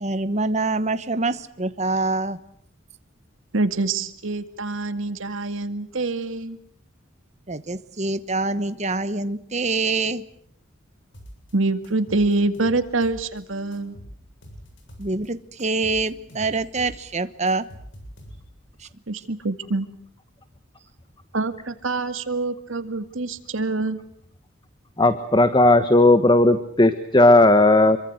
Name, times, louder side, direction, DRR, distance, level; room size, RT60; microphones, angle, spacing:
voice 1, 0.0-2.4 7.5-10.2 15.0-17.7, right 3 dB, 35° right, 12 dB, 1.1 m, -25 dB
voice 2, 3.5-6.6 11.5-14.0 19.1-19.9 21.3-24.0, right 3 dB, 75° right, 10 dB, 2.1 m, -25 dB
sound 1, 11.1-11.5 11.8-13.4 13.7-15.3 15.6-18.7, equal, 60° left, 7.9 m, -44 dB
voice 3, 25.0-28.0, left 2 dB, 20° left, 11 dB, 1.2 m, -15 dB
27.0 x 24.0 x 8.0 m, 0.65 s
head